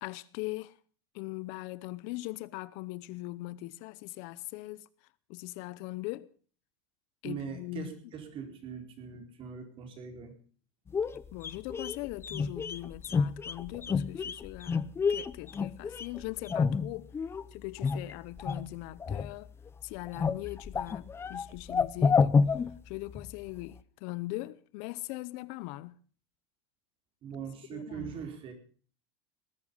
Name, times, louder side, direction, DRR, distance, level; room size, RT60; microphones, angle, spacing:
voice 1, 0.0-0.8 1.1-4.9 5.3-6.3 7.2-7.9 11.3-17.1 17.5-19.5 19.8-22.4 22.8-26.0 27.7-28.1, left 19 dB, 60° left, 0.8 m, -40 dB
voice 2, 7.2-10.3 27.2-28.5, right 7 dB, 40° right, 4.5 m, -41 dB
sound 1, 10.9-17.4 17.8-18.7 19.0-19.7 20.0-23.3 23.6-23.7, left 5 dB, 20° left, 0.7 m, -29 dB
19.0 x 11.0 x 5.5 m
supercardioid pair, 130°, 14 cm